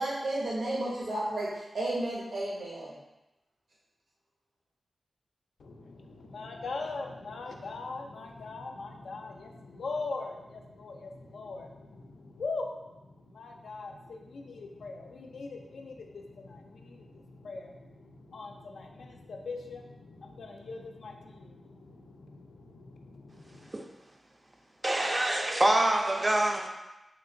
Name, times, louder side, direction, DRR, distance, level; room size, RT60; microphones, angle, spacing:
voice 1, 0.0-2.9, right 1 dB, 75° right, -7 dB, 0.6 m, -32 dB
voice 2, 5.6-23.7, left 3 dB, 90° left, 2 dB, 0.3 m, -41 dB
voice 3, 24.8-26.7, right 1 dB, 30° right, 2 dB, 0.3 m, -25 dB
3.0 x 2.8 x 2.5 m, 0.98 s
wide cardioid pair, 75°, 0 cm